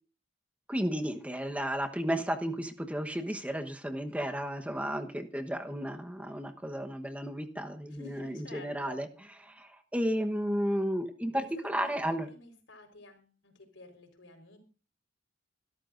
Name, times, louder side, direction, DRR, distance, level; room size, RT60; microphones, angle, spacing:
voice 1, 0.7-9.1 9.4-12.3, equal, 5° right, 5 dB, 1.1 m, -33 dB
voice 2, 7.9-9.0 11.3-14.6, left 1 dB, 85° left, 5 dB, 4.4 m, -51 dB
25.5 x 13.0 x 2.6 m, 0.36 s
head